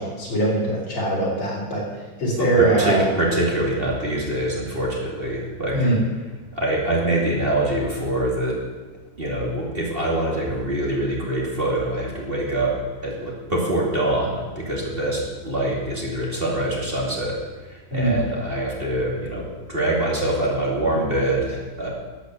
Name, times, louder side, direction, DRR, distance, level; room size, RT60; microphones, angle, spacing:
voice 1, 0.0-3.1 5.7-6.0 17.9-18.2, right 2 dB, 75° left, -4 dB, 4.9 m, -22 dB
voice 2, 2.4-5.8 6.5-8.6 9.2-12.7 13.0-17.4 17.6-21.9, right 1 dB, 25° right, -3 dB, 2.6 m, -24 dB
13.0 x 8.1 x 7.9 m, 1.3 s
omnidirectional pair, 2.2 m